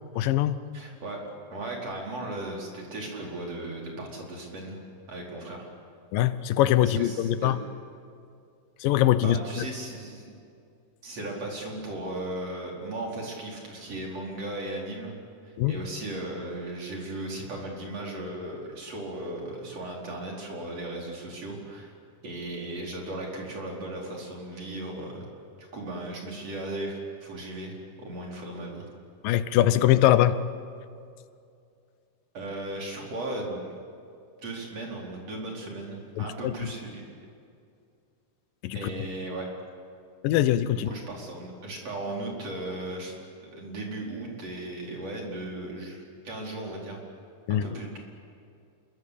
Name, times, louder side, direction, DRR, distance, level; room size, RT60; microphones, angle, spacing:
voice 1, 0.2-0.6 6.1-7.6 8.8-9.7 15.6-15.8 29.2-30.4 36.2-36.7 38.6-38.9 40.2-40.9 47.5-47.7, left 12 dB, 85° left, 13 dB, 2.6 m, -23 dB
voice 2, 0.7-1.2 1.5-4.8 5.1-5.7 6.8-7.5 9.2-10.3 11.0-15.2 15.4-21.9 22.2-25.3 25.6-28.8 32.3-33.7 34.4-37.0 38.7-39.5 40.8-43.2 43.4-47.0 47.5-48.0, right 1 dB, 45° right, -1 dB, 5.7 m, -36 dB
27.5 x 23.0 x 8.5 m, 2.4 s
omnidirectional pair, 3.9 m